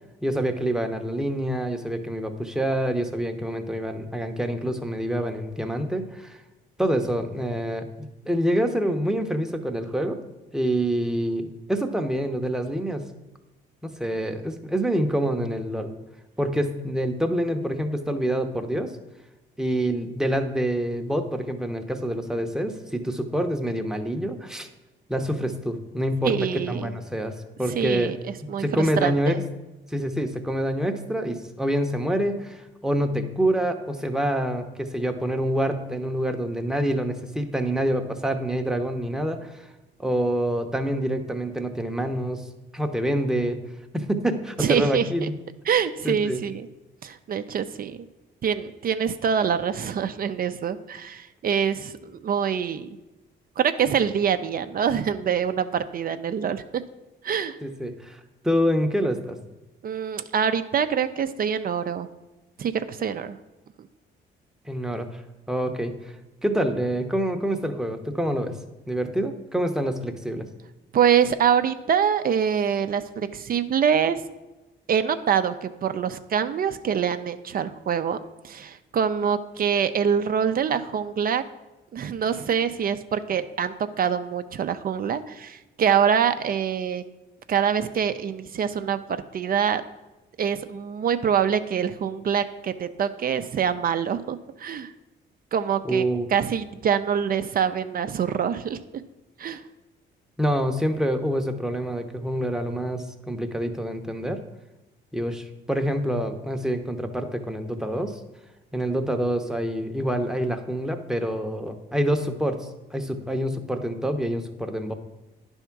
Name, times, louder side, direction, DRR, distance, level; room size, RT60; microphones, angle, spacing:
voice 1, 0.2-6.4 6.8-7.8 8.2-10.2 10.5-13.1 13.8-15.9 16.4-18.9 19.6-24.7 25.1-29.4 29.9-39.7 40.0-42.4 42.7-43.6 43.9-45.3 46.0-46.4 57.6-59.4 64.7-65.2 65.5-65.9 66.4-68.5 68.9-70.5 95.8-96.3 100.4-104.4 105.1-108.2 108.7-114.9, equal, 5° right, 5 dB, 0.8 m, -26 dB
voice 2, 26.2-26.9 27.7-29.4 44.6-45.3 45.7-46.7 47.0-48.1 48.4-52.9 53.6-56.6 57.2-57.6 59.8-62.1 62.6-63.4 70.9-74.2 74.9-78.2 78.4-81.4 81.9-87.0 87.5-89.8 90.4-94.9 95.5-96.0 96.3-98.8 99.4-99.6, right 7 dB, 45° right, 10 dB, 0.5 m, -25 dB
9.9 x 3.6 x 5.9 m, 1.0 s
cardioid pair, 90°, 20 cm